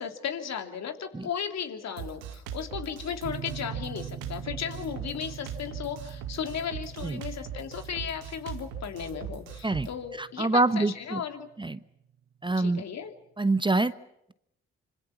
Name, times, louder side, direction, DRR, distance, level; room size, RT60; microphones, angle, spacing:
voice 1, 0.0-11.5 12.5-13.1, left 7 dB, 60° left, 6 dB, 2.8 m, -35 dB
Drum kit, 2.0-9.9, right 9 dB, 80° right, 2.1 m, -40 dB
sound 1, 3.2-11.9, right 9 dB, 45° right, 1.5 m, -44 dB
voice 2, 10.2-11.2 11.6-11.8 12.4-12.8 13.4-13.9, right 2 dB, 15° right, 14 dB, 1.0 m, -25 dB
26.0 x 25.5 x 7.2 m, 0.81 s
hypercardioid pair, 40°, 31 cm